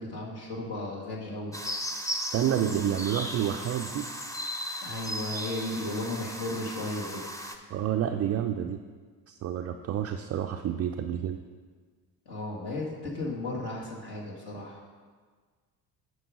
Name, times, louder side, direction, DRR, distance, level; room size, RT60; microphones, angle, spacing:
voice 1, 0.0-1.5 4.8-7.2 12.3-14.8, left 2 dB, 50° left, -4 dB, 2.1 m, -35 dB
sound 1, 1.5-7.5, equal, 5° left, 0.8 m, -36 dB
voice 2, 2.3-4.1 7.7-8.8 9.3-11.4, right 10 dB, 30° right, 5 dB, 0.4 m, -29 dB
9.2 x 5.3 x 5.1 m, 1.5 s
hypercardioid pair, 55°, 50 cm